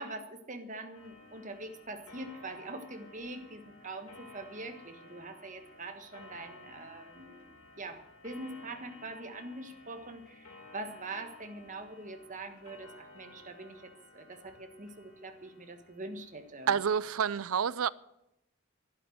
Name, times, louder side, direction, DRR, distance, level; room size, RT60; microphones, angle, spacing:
voice 1, 0.0-16.7, right 2 dB, 35° right, 1.5 m, -44 dB
Clock, 0.9-17.1, left 2 dB, 85° left, 2.7 m, -55 dB
voice 2, 16.7-17.9, right 7 dB, 75° right, 0.5 m, -28 dB
11.5 x 11.5 x 7.9 m
head